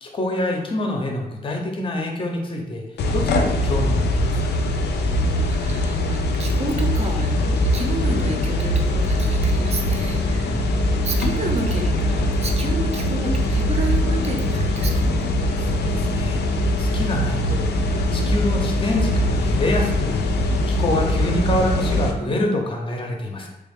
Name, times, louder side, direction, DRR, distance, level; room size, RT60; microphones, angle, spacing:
voice 1, 0.0-2.8 3.1-4.7 10.4-10.6 15.7-16.4 16.8-17.7 18.1-23.5, left 1 dB, 30° left, 1 dB, 0.5 m, -26 dB
sound 1, 3.0-22.1, left 1 dB, 85° left, 0.4 m, -22 dB
sound 2, 4.6-4.8 7.4-22.6, right 2 dB, 80° right, 0.7 m, -35 dB
voice 2, 5.5-7.3 7.7-10.6 11.0-15.3, right 3 dB, 40° right, 2 dB, 0.5 m, -30 dB
3.3 x 2.3 x 3.4 m, 0.92 s
wide cardioid pair, 150°, 17 cm